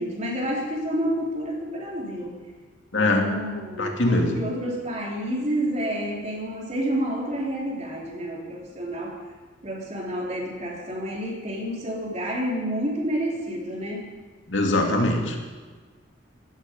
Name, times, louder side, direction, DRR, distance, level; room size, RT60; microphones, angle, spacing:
voice 1, 0.0-2.4 2.9-9.2 9.6-14.1, equal, 40° right, -2 dB, 3.8 m, -29 dB
voice 2, 2.9-3.3 3.8-4.4 14.5-15.4, left 2 dB, 85° left, 2 dB, 2.4 m, -22 dB
16.5 x 13.5 x 5.4 m, 1.4 s
head